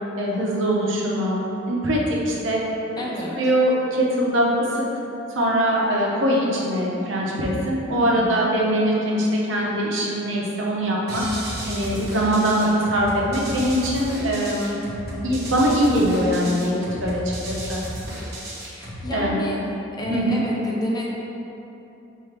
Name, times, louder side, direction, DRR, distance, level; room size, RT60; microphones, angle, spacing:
voice 1, 0.2-1.4 1.7-2.6 2.9-3.0 3.4-4.8 5.4-11.2 11.7-14.8 15.2-17.8 19.1-19.4 20.1-20.4, equal, 90° right, -3 dB, 0.8 m, -22 dB
voice 2, 3.0-3.4 7.9-8.4 12.0-12.8 18.6-19.6 20.0-21.0, left 1 dB, 20° left, -4 dB, 0.5 m, -30 dB
sound 1, 11.1-19.1, right 1 dB, 55° right, 0.9 m, -33 dB
5.7 x 2.7 x 3.3 m, 2.9 s
head